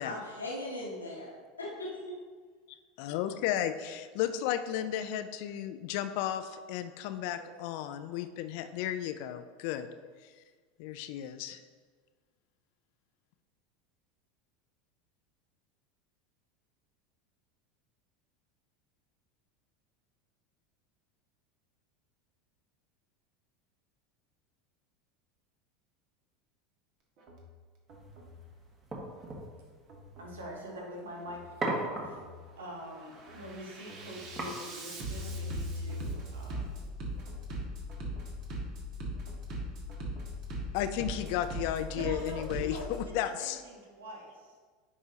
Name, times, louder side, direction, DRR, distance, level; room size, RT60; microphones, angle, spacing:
voice 1, 0.0-1.3 1.6-2.2 7.4-7.5, left 1 dB, 90° left, -4 dB, 1.1 m, -39 dB
voice 2, 2.7-9.9 10.2-10.3 10.8-11.6 40.7-43.6, left 11 dB, 60° left, 10 dB, 0.4 m, -34 dB
Bass drum, 27.2-27.4 27.9-28.4 29.2-29.4 29.9-30.4 31.2-31.4 31.9-32.4 32.8-43.0, equal, 50° right, 1.6 m, -40 dB
sound 1, 27.9-35.6, right 2 dB, 30° right, 1.7 m, -41 dB
voice 3, 30.2-32.2 32.6-36.8 42.0-44.6, equal, 75° right, -1 dB, 1.5 m, -44 dB
9.4 x 5.4 x 2.8 m, 1.5 s
figure-of-eight pair, 80°, 0 cm